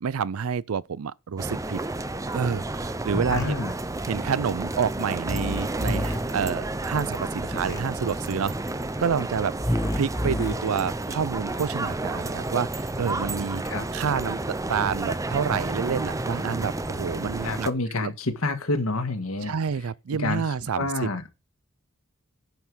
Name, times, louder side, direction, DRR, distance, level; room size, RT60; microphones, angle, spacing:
voice 1, 0.0-1.8 2.3-3.7 4.1-8.5 9.0-13.6 13.9-14.4 14.7-17.7 18.0-18.1 19.4-21.1, right 6 dB, 80° right, 0.5 m, -28 dB
sound 1, 1.4-17.7, right 2 dB, 15° right, 0.6 m, -31 dB
sound 2, 3.1-3.4 5.2-6.2 7.4-7.8 9.6-10.5, equal, 15° left, 1.6 m, -28 dB
voice 2, 3.3-3.7 13.6-13.9 17.4-19.5 20.2-20.4 20.8-21.2, left 2 dB, 75° left, 1.8 m, -28 dB
10.5 x 5.8 x 6.3 m
head